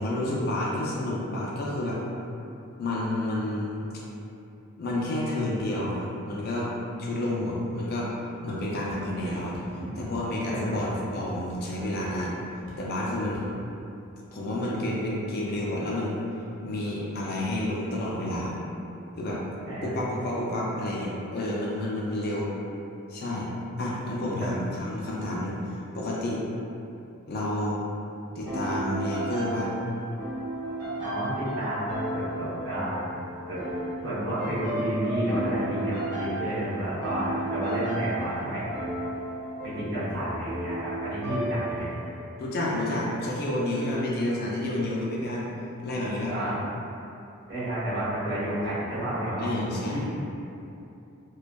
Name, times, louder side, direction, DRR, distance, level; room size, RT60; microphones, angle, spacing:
voice 1, 0.0-2.0 2.8-3.8 4.8-6.7 7.0-8.1 8.4-9.6 10.0-12.3 12.8-13.5 14.3-16.2 16.6-18.6 19.2-19.4 19.8-22.5 23.1-23.5 23.8-26.4 27.3-27.9 28.4-29.7 42.4-45.5 45.8-46.3 49.4-50.0, left 1 dB, 45° left, -4 dB, 0.3 m, -30 dB
sound 1, 8.9-9.1 9.5-9.8 10.1-10.4 10.8-11.0 11.3-11.8 12.1-12.2 12.7-12.9 13.3-13.5, left 1 dB, 75° left, 0.7 m, -45 dB
sound 2, 28.5-42.1, right 1 dB, 85° right, 1.3 m, -34 dB
voice 2, 31.0-33.1 33.5-33.6 34.0-38.8 39.6-41.9 46.3-46.6 47.5-49.5 49.9-50.2, right 1 dB, 50° right, -11 dB, 0.9 m, -30 dB
2.5 x 2.2 x 2.2 m, 2.7 s
head